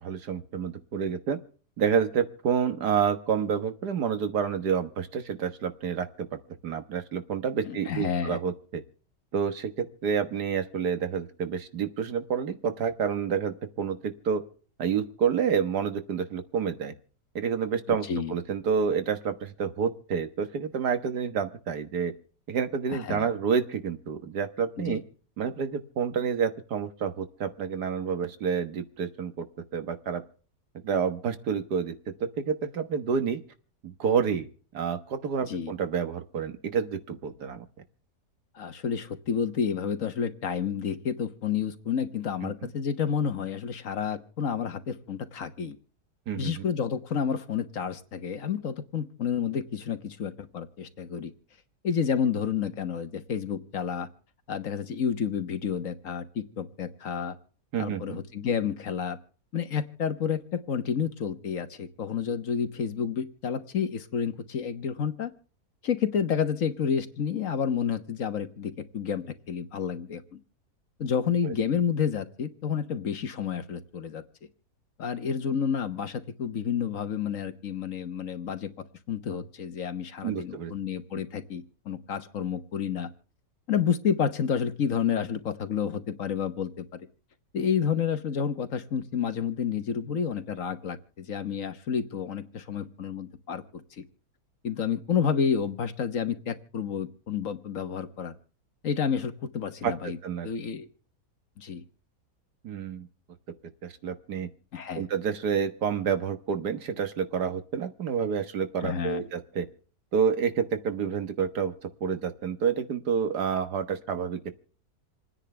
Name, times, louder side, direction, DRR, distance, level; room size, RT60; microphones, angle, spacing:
voice 1, 0.0-1.4 1.8-6.3 6.6-8.8 9.3-14.4 14.8-16.9 17.4-22.1 22.5-25.0 25.4-29.4 29.7-30.2 30.8-31.9 32.2-33.4 33.8-34.5 34.7-37.7 42.4-42.7 46.3-46.6 57.7-58.2 71.4-71.5 80.2-80.7 99.8-99.9 100.2-100.5 102.6-103.1 103.8-104.5 104.9-109.7 110.1-111.7 112.0-114.5, right 7 dB, 85° right, 9 dB, 1.9 m, -29 dB
voice 2, 7.6-8.4 17.9-18.3 22.9-23.3 24.9-25.0 35.5-35.7 38.5-45.8 46.3-51.3 51.8-54.1 54.5-57.4 57.8-59.2 59.5-65.3 65.8-70.4 71.0-74.2 75.0-78.7 79.1-83.1 83.7-87.1 87.5-93.6 93.9-94.0 94.6-98.3 98.8-100.2 100.4-100.9 101.6-101.8 104.7-105.0 108.8-109.2, left 7 dB, 55° left, 10 dB, 1.4 m, -30 dB
28.0 x 9.9 x 3.3 m, 0.42 s
omnidirectional pair, 1.7 m